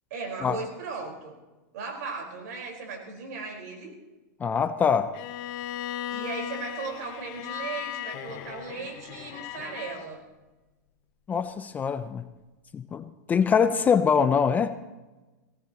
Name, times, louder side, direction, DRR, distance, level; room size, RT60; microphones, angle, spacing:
voice 1, 0.1-1.4 1.7-4.0 6.1-10.2, right 4 dB, 60° right, 0 dB, 4.6 m, -37 dB
voice 2, 4.4-5.1 11.3-12.3 12.7-14.8, left 6 dB, 15° left, 11 dB, 0.5 m, -24 dB
Bowed string instrument, 5.1-10.0, left 11 dB, 40° left, 1.0 m, -37 dB
19.0 x 17.5 x 3.0 m, 1.1 s
supercardioid pair, 145°, 10 cm